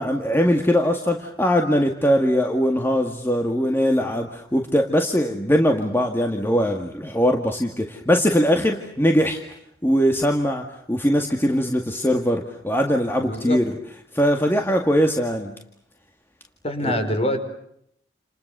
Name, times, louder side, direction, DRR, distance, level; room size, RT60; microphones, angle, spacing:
voice 1, 0.0-9.4 9.8-13.8 14.1-15.6 16.8-17.0, equal, 15° left, 3 dB, 2.1 m, -21 dB
voice 2, 13.3-13.6 16.6-17.4, left 1 dB, 35° left, 7 dB, 5.2 m, -24 dB
30.0 x 28.5 x 6.9 m, 0.73 s
head